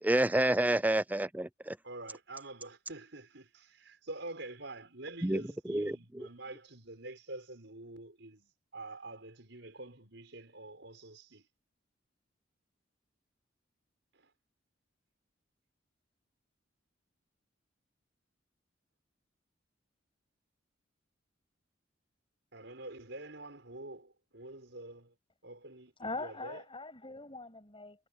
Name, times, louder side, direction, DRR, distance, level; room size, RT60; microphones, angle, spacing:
voice 1, 0.0-1.8 5.2-6.3, right 1 dB, 10° right, 0.5 m, -29 dB
voice 2, 1.8-11.5 14.1-14.3 22.5-25.1 25.4-25.9 26.2-26.6, right 2 dB, 70° right, 6.7 m, -47 dB
voice 3, 26.0-28.1, left 3 dB, 30° left, 7.8 m, -42 dB
head